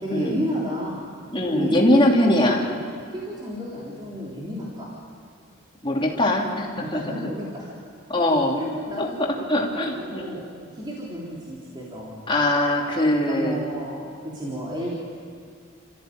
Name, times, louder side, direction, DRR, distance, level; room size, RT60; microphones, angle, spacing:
voice 1, 0.0-1.0 1.4-2.5 3.1-4.9 6.8-7.7 8.5-10.5 10.7-12.3 13.3-14.9, equal, 20° right, -6 dB, 3.6 m, -31 dB
voice 2, 1.3-2.6 5.8-7.1 8.1-8.6 9.0-10.4 12.3-13.6, left 1 dB, 25° left, -1 dB, 3.0 m, -22 dB
30.0 x 14.5 x 9.4 m, 2.2 s
head